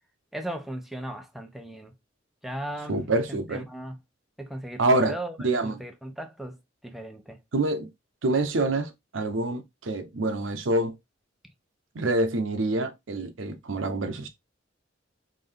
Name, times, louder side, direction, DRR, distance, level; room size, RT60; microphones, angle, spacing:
voice 1, 0.3-1.9 2.4-4.0 4.4-6.6 6.8-7.4, right 1 dB, ahead, 0.5 m, -37 dB
voice 2, 2.9-3.7 4.8-5.2 5.4-5.8 7.5-7.9 8.2-11.0 11.9-14.3, right 2 dB, 90° right, 0.7 m, -26 dB
3.8 x 2.6 x 3.2 m
head